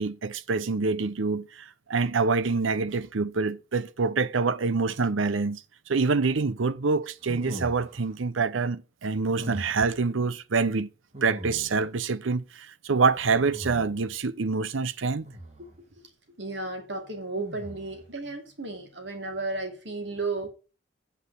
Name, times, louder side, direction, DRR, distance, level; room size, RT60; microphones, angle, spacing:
voice 1, 0.0-5.6 5.9-10.9 11.2-15.3, right 4 dB, 80° right, 0.7 m, -26 dB
sound 1, 7.2-8.2 9.3-10.0 11.1-12.0 13.1-14.2 15.2-15.8 17.4-18.1, right 1 dB, 35° right, 2.1 m, -41 dB
voice 2, 16.4-20.5, right 3 dB, 65° right, 2.8 m, -33 dB
8.3 x 5.9 x 6.7 m
head